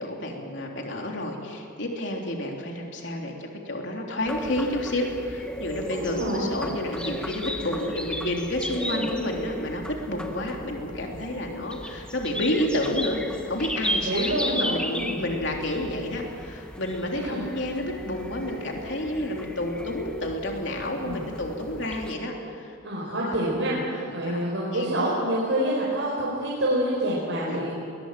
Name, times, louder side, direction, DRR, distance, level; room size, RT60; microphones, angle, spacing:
voice 1, 0.0-22.7 23.0-23.4 23.9-24.4 24.7-24.9 27.4-27.7, left 1 dB, 65° left, 1 dB, 3.3 m, -30 dB
sound 1, 4.3-22.2, equal, 5° left, 1.2 m, -35 dB
voice 2, 5.9-6.6 8.8-9.1 14.0-15.2 17.1-17.4 21.0-21.2 22.8-27.8, right 1 dB, 75° right, -5 dB, 4.5 m, -27 dB
21.0 x 20.0 x 7.6 m, 2.7 s
head